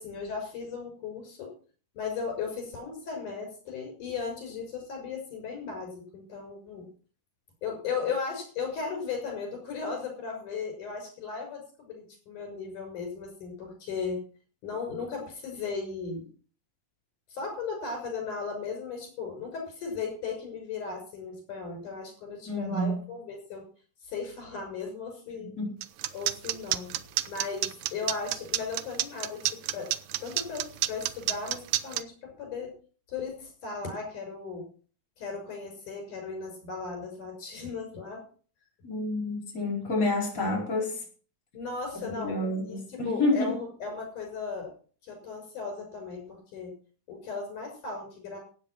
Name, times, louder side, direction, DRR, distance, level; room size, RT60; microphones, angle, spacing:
voice 1, 0.0-1.5 1.9-6.9 7.6-14.2 14.6-16.3 17.3-23.6 24.0-25.5 26.1-26.9 27.3-29.9 30.2-32.7 33.1-34.7 35.2-38.2 41.5-44.7 45.0-46.7 47.1-48.4, left 5 dB, 75° left, 3 dB, 7.8 m, -36 dB
voice 2, 22.5-23.0 25.6-25.7 38.8-41.0 42.0-43.6, left 2 dB, 25° left, -1 dB, 5.3 m, -29 dB
sound 1, 25.8-32.0, right 14 dB, 75° right, 2.0 m, -28 dB
15.0 x 9.1 x 6.3 m, 0.41 s
omnidirectional pair, 3.7 m